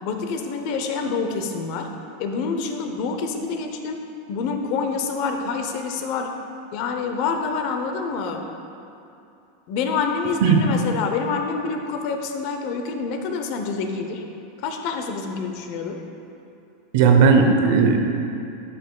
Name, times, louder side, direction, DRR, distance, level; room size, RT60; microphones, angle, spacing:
voice 1, 0.0-1.9 2.2-4.0 4.3-6.3 6.7-8.4 9.7-14.2 14.6-16.0, left 5 dB, 55° left, 4 dB, 0.8 m, -27 dB
voice 2, 16.9-18.0, right 5 dB, 65° right, 4 dB, 0.8 m, -15 dB
12.0 x 5.1 x 2.4 m, 2.7 s
supercardioid pair, 125°, 0 cm